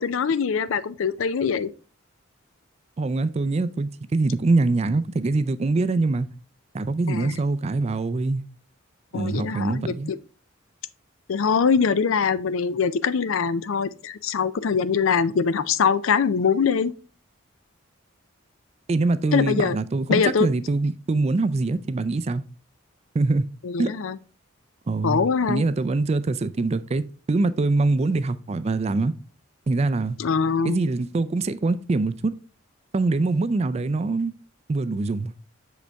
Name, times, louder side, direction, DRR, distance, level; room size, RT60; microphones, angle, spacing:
voice 1, 0.0-1.7 7.1-7.4 9.1-9.9 11.3-16.9 19.3-19.8 20.1-20.5 23.6-24.2 25.0-25.6 30.2-30.8, left 6 dB, 80° left, 0.4 m, -23 dB
voice 2, 3.0-6.3 6.7-8.4 9.1-10.1 18.9-22.4 23.1-23.5 23.8-23.9 24.9-29.1 29.7-30.2 30.6-32.4 32.9-34.3 34.7-35.3, right 3 dB, 30° right, 0.3 m, -24 dB
6.5 x 5.1 x 3.4 m
head